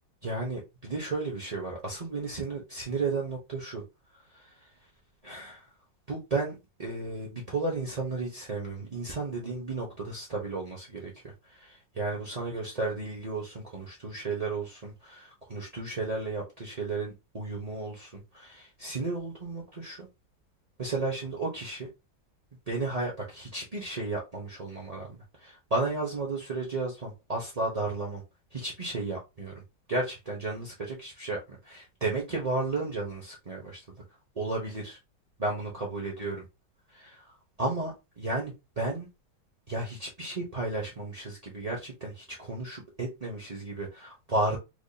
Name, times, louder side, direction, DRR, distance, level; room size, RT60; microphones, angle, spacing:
voice 1, 0.2-3.8 4.3-4.5 5.2-5.7 6.1-20.1 20.8-21.9 22.7-28.2 28.5-29.5 29.9-33.8 34.3-35.0 35.4-36.4 36.9-37.2 37.6-39.1 39.7-44.6, right 3 dB, 45° right, 0.4 m, -33 dB
4.9 x 2.6 x 2.3 m
omnidirectional pair, 2.2 m